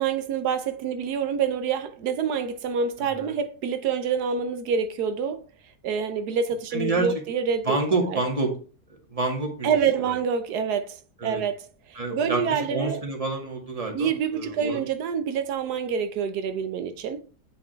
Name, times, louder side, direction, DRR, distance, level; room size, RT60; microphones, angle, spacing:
voice 1, 0.0-5.4 5.8-7.8 8.1-8.2 9.6-11.0 11.2-13.0 13.9-17.2, right 6 dB, 90° right, 1.3 m, -27 dB
voice 2, 6.7-7.1 7.6-8.5 8.9-9.7 10.0-10.2 11.2-11.4 12.0-14.8, right 2 dB, 20° right, 2.0 m, -28 dB
8.4 x 5.3 x 3.4 m
omnidirectional pair, 1.6 m